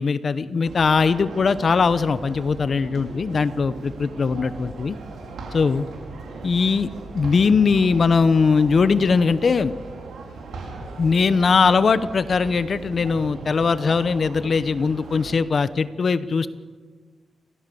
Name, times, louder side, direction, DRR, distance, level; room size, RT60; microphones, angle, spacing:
voice 1, 0.0-5.0 5.5-5.8 6.4-6.9 7.1-9.7 11.0-16.5, left 5 dB, 50° left, 14 dB, 0.9 m, -20 dB
sound 1, 0.6-15.4, right 3 dB, 85° right, 5.4 m, -38 dB
29.5 x 14.5 x 7.0 m, 1.5 s
cardioid pair, 85°, 0 cm